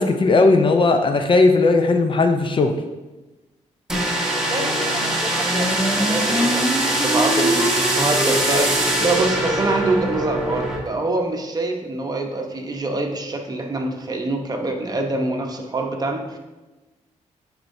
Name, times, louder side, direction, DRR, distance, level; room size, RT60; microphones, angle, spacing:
voice 1, 0.0-2.7, left 3 dB, 40° left, 7 dB, 0.6 m, -17 dB
sound 1, 3.9-10.8, right 1 dB, 5° right, 1.4 m, -21 dB
voice 2, 4.5-16.4, right 2 dB, 30° right, 3 dB, 0.9 m, -25 dB
9.8 x 4.5 x 2.7 m, 1.1 s
cardioid pair, 90°, 13 cm